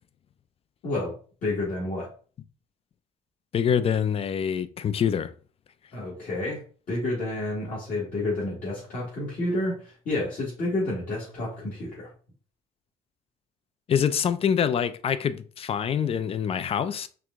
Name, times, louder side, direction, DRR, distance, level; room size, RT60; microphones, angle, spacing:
voice 1, 1.4-2.1 5.9-6.6 6.9-12.1, left 2 dB, 55° left, 1.8 m, -30 dB
voice 2, 3.5-5.3 13.9-17.1, left 8 dB, 35° left, 0.4 m, -25 dB
4.7 x 2.5 x 3.6 m
cardioid pair, 110°, 17 cm